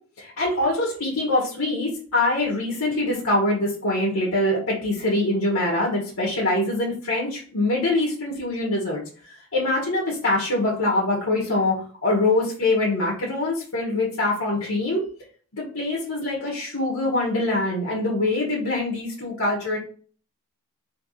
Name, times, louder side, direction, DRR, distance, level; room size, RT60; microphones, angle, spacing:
voice 1, 0.2-15.0 15.5-19.8, left 2 dB, 65° left, -3 dB, 1.2 m, -24 dB
4.1 x 3.1 x 3.1 m, 0.44 s
head